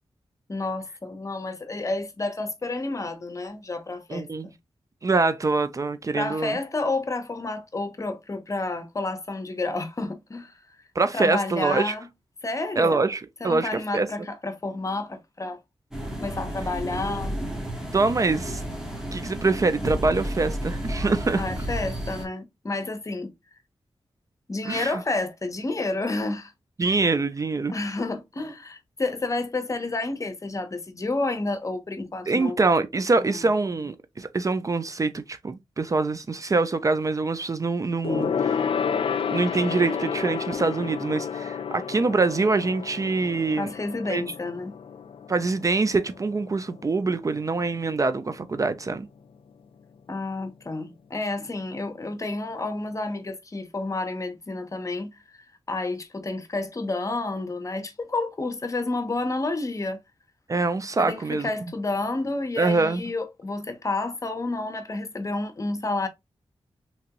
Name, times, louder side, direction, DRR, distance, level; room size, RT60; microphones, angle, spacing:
voice 1, 0.5-4.6 6.1-10.6 11.1-12.1 12.4-13.0 13.4-15.6 16.2-17.3 21.3-23.3 24.5-26.5 26.8-26.9 27.7-32.6 33.1-33.5 43.6-44.7 50.1-60.0 61.0-66.1, left 2 dB, 35° left, 0.7 m, -30 dB
voice 2, 4.1-4.5 5.0-6.6 11.0-11.9 12.8-14.1 17.9-18.6 19.1-21.4 24.7-24.9 26.8-27.7 32.3-38.6 39.3-43.7 44.1-44.2 45.3-49.1 60.5-61.5 62.6-63.0, right 3 dB, 35° right, 0.4 m, -24 dB
sound 1, 15.9-22.2, right 1 dB, 5° right, 1.4 m, -32 dB
Gong, 38.0-47.8 48.1-48.4 48.7-48.8, left 7 dB, 70° left, 0.4 m, -31 dB
3.4 x 2.9 x 2.8 m
wide cardioid pair, 80°, 10 cm